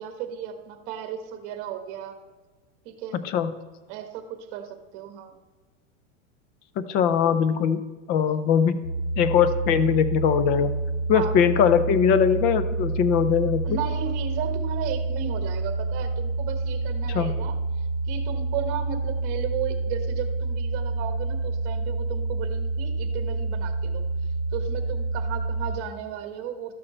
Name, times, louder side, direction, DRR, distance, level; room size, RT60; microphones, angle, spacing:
voice 1, 0.0-2.2 2.8-3.2 3.9-5.3 11.1-11.3 13.6-24.1 24.5-26.7, right 9 dB, 40° right, 7 dB, 1.4 m, -35 dB
voice 2, 3.1-3.5 6.8-7.8 8.1-8.8 9.2-10.7 11.1-13.6 17.1-17.3, left 8 dB, 25° left, 12 dB, 0.4 m, -21 dB
sound 1, 8.8-25.7, right 3 dB, 55° left, 1.5 m, -28 dB
13.0 x 6.4 x 4.3 m, 1.3 s
supercardioid pair, 155°, 36 cm